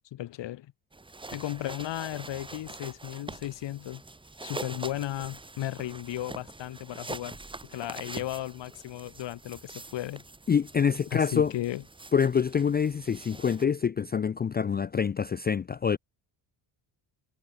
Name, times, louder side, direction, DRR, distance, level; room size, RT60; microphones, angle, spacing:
voice 1, 0.1-0.7 1.3-4.0 4.4-7.4 7.7-10.2 11.1-11.8, left 14 dB, 75° left, 2.9 m, -35 dB
sound 1, 0.9-13.7, right 2 dB, 10° right, 2.4 m, -44 dB
voice 2, 10.5-11.5 12.1-16.0, left 7 dB, 25° left, 0.5 m, -26 dB
cardioid pair, 145°, 44 cm